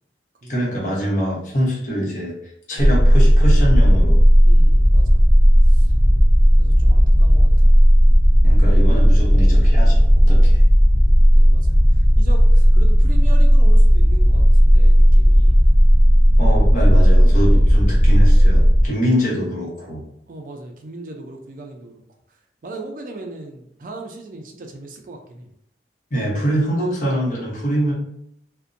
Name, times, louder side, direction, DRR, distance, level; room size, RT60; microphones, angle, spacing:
voice 1, 0.5-4.2 8.4-10.6 16.4-20.0 26.1-27.9, equal, 45° left, -4 dB, 0.9 m, -24 dB
sound 1, 2.8-18.9, equal, 90° left, 0.8 m, -12 dB
voice 2, 4.4-5.2 5.6-5.9 6.6-7.7 11.3-15.6 17.3-17.6 18.8-19.0 20.3-22.0 22.3-25.5, right 2 dB, 50° right, 3 dB, 0.4 m, -38 dB
2.5 x 2.1 x 2.5 m, 0.72 s
head